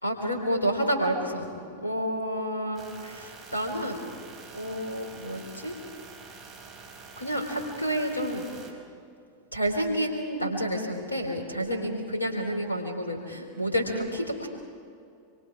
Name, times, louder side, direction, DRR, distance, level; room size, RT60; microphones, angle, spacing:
voice 1, 0.0-4.0 4.5-5.7 7.2-8.5 9.5-14.5, equal, 80° left, 3 dB, 3.9 m, -29 dB
sound 1, 2.7-8.7, right 4 dB, 30° right, 4.5 m, -47 dB
26.5 x 24.5 x 4.9 m, 2.5 s
figure-of-eight pair, 90°, 0 cm